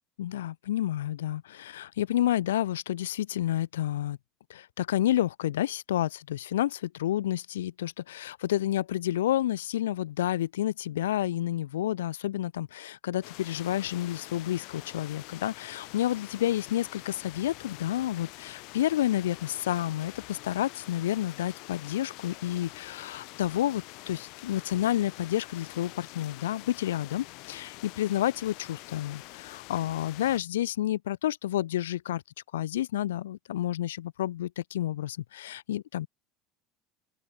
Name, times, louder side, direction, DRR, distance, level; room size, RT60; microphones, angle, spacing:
voice 1, 0.2-4.2 4.5-32.2 32.5-36.1, left 12 dB, 90° left, 0.7 m, -30 dB
sound 1, 13.2-30.4, left 28 dB, 65° left, 4.4 m, -46 dB
open air
hypercardioid pair, 90°, 0 cm